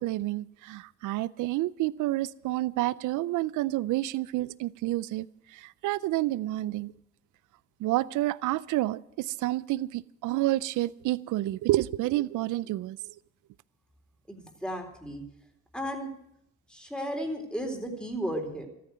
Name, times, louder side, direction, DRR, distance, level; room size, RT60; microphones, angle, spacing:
voice 1, 0.0-5.2 5.5-6.9 7.8-13.0, right 16 dB, 80° right, 0.5 m, -29 dB
voice 2, 14.3-15.2 15.7-16.1 16.7-18.7, equal, 5° left, 3.8 m, -34 dB
14.0 x 9.5 x 9.3 m
cardioid pair, 90°, 30 cm